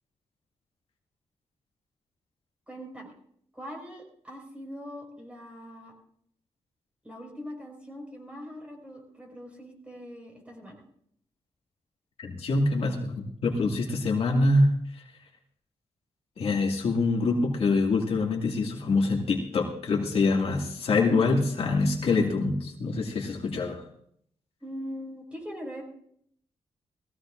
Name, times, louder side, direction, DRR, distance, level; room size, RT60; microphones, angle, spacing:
voice 1, 2.7-3.1 3.5-5.9 7.0-10.8 24.6-25.8, equal, 10° right, -1 dB, 4.9 m, -41 dB
voice 2, 12.2-15.0 16.4-23.8, left 3 dB, 60° left, -1 dB, 2.1 m, -25 dB
21.0 x 15.5 x 2.5 m, 0.68 s
wide cardioid pair, 150°, 11 cm